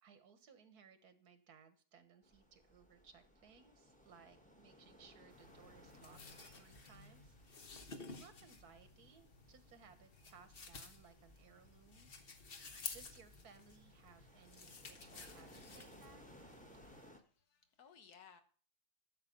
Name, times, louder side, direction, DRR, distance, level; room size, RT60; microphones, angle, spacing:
voice 1, 0.0-16.2, right 6 dB, 85° right, 1.8 m, -63 dB
sound 1, 2.2-17.2, equal, 5° left, 1.3 m, -63 dB
sound 2, 5.3-17.1, left 4 dB, 40° left, 1.3 m, -53 dB
voice 2, 17.2-18.4, left 7 dB, 80° left, 1.8 m, -61 dB
12.0 x 8.0 x 5.3 m
omnidirectional pair, 1.6 m